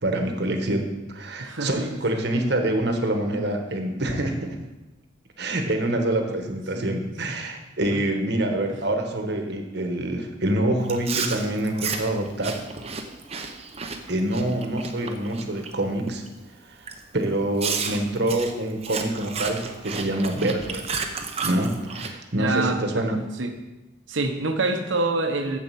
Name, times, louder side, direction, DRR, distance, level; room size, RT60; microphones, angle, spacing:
voice 1, 0.0-4.6 5.4-12.6 14.1-16.2 16.7-16.8 17.1-20.8 21.4-23.2, right 1 dB, 60° right, 4 dB, 1.3 m, -26 dB
voice 2, 1.4-1.8 2.1-2.2 6.4-6.9 7.9-8.0 8.7-8.8 22.3-23.5 24.1-25.6, right 2 dB, 85° right, 6 dB, 1.1 m, -27 dB
Chewing mastication, 10.8-15.7 16.1-16.4 16.9-17.0 17.6-22.1, right 5 dB, 35° right, 0.8 m, -32 dB
7.4 x 7.3 x 7.0 m, 1.1 s
head